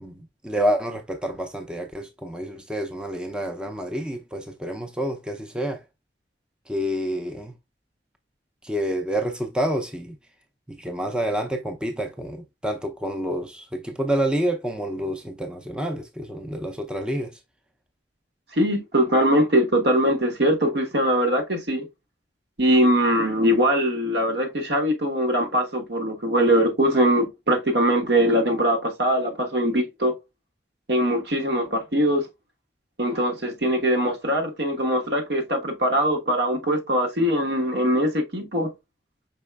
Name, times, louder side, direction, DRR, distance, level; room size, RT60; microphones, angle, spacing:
voice 1, 0.0-5.8 6.7-7.5 8.6-10.1 10.7-17.4, right 1 dB, 5° right, 0.4 m, -28 dB
voice 2, 18.5-21.9 22.6-30.1 30.9-32.2 33.0-38.7, equal, 65° right, 1.2 m, -22 dB
5.3 x 4.2 x 2.2 m
head